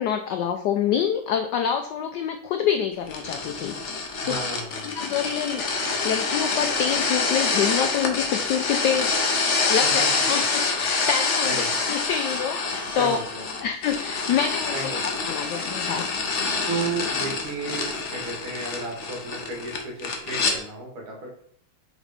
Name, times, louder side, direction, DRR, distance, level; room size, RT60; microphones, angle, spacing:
voice 1, 0.0-4.4 4.8-5.6 6.0-9.1 9.5-13.2 13.6-16.1, left 8 dB, 85° left, 6 dB, 0.9 m, -27 dB
sound 1, 3.1-20.6, left 4 dB, 55° left, 0.8 m, -26 dB
voice 2, 4.2-5.0 9.8-10.1 10.3-10.4 11.4-11.8 12.9-13.7 14.7-15.2 16.7-21.3, right 3 dB, 70° right, -1 dB, 2.4 m, -33 dB
sound 2, 4.7-6.0 8.3-9.7 11.9-12.4 12.7-13.2, left 3 dB, 40° left, 1.4 m, -47 dB
5.1 x 4.2 x 5.0 m, 0.65 s
omnidirectional pair, 2.4 m